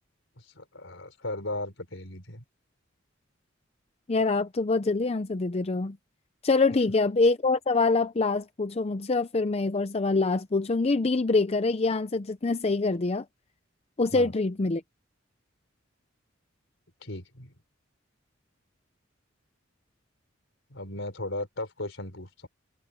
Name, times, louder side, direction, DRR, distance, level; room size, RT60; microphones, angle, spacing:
voice 1, 0.4-2.4 14.1-14.3 17.0-17.5 20.7-22.5, left 2 dB, 70° left, 4.9 m, -36 dB
voice 2, 4.1-6.0 6.4-13.2 14.0-14.8, left 3 dB, 30° left, 0.5 m, -25 dB
head